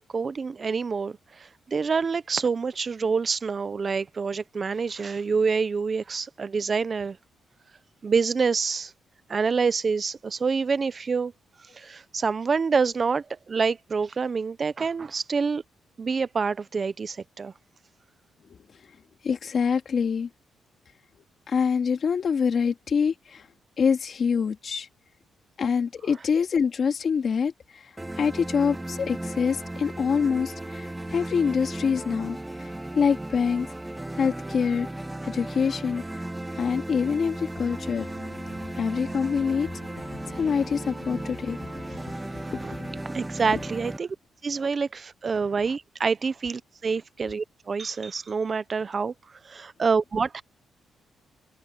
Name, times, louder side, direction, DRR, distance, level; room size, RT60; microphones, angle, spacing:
voice 1, 0.1-7.2 8.0-8.9 9.3-11.3 11.7-15.6 16.0-17.5 41.9-42.0 42.4-42.7 43.1-44.2 44.4-49.1 49.4-50.4, right 5 dB, 35° right, 0.6 m, -27 dB
voice 2, 19.2-20.3 21.5-23.4 23.8-24.9 25.6-27.5 28.2-32.4 32.9-33.7 34.2-34.9 35.2-36.0 36.6-38.1 38.8-39.7 40.3-41.6 42.5-43.0, left 6 dB, 45° left, 2.4 m, -25 dB
sound 1, 28.0-44.0, right 1 dB, 10° right, 1.7 m, -36 dB
sound 2, 37.6-42.2, left 9 dB, 65° left, 3.6 m, -46 dB
cardioid pair, 125°, 0 cm